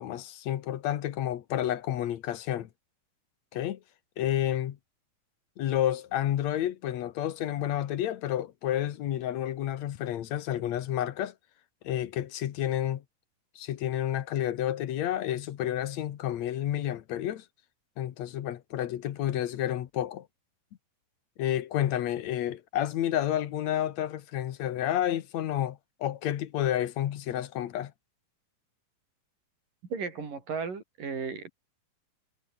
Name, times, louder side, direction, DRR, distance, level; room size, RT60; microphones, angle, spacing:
voice 1, 0.0-2.7 3.5-3.8 4.2-4.8 5.6-11.3 11.8-13.0 13.6-17.5 18.0-20.3 21.4-27.9, left 11 dB, 60° left, 2.1 m, -30 dB
voice 2, 29.9-31.5, right 5 dB, 70° right, 6.5 m, -35 dB
omnidirectional pair, 4.0 m